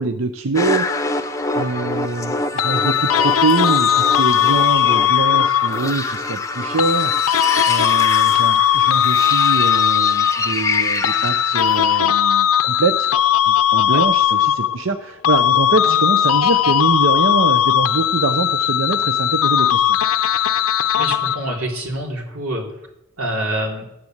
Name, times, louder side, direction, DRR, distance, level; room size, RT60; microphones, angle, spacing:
voice 1, 0.0-13.1 13.5-20.0, right 3 dB, 65° right, 9 dB, 0.7 m, -24 dB
sound 1, 0.5-12.0, left 3 dB, 15° left, 0.7 m, -25 dB
sound 2, 2.6-5.9 6.8-10.6 11.0-15.0 15.2-21.6, left 10 dB, 85° left, 0.6 m, -18 dB
voice 2, 21.0-22.6 23.2-23.9, right 1 dB, 90° right, 1 dB, 3.8 m, -26 dB
13.5 x 10.0 x 8.0 m, 0.89 s
head